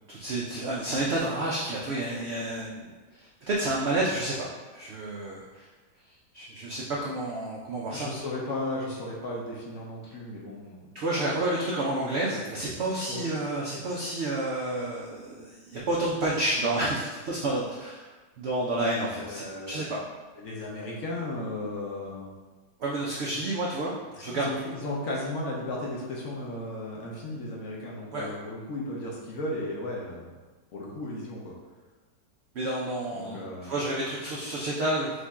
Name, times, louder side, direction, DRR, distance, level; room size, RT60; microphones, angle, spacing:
voice 1, 0.1-5.7 6.3-8.1 10.9-18.1 18.4-20.0 22.8-23.9 24.2-24.5 28.1-28.3 32.5-35.1, right 1 dB, 70° right, -4 dB, 0.6 m, -30 dB
voice 2, 7.9-10.9 13.1-13.2 19.2-19.9 20.4-22.3 24.3-30.3 30.7-31.5 33.1-33.8, left 1 dB, 60° left, -3 dB, 1.0 m, -35 dB
5.1 x 2.6 x 3.5 m, 1.3 s
omnidirectional pair, 1.8 m